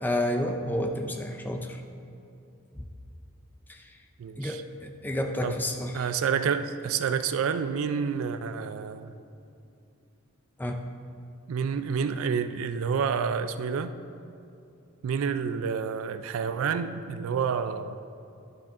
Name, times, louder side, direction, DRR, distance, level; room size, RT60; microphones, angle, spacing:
voice 1, 0.0-1.8 4.4-6.0 10.6-10.8, left 1 dB, 10° left, 4 dB, 0.4 m, -30 dB
voice 2, 4.2-4.6 5.4-5.6 5.9-9.1 11.5-13.9 15.0-18.0, right 6 dB, 70° right, 11 dB, 0.3 m, -29 dB
11.0 x 3.8 x 3.7 m, 2.6 s
head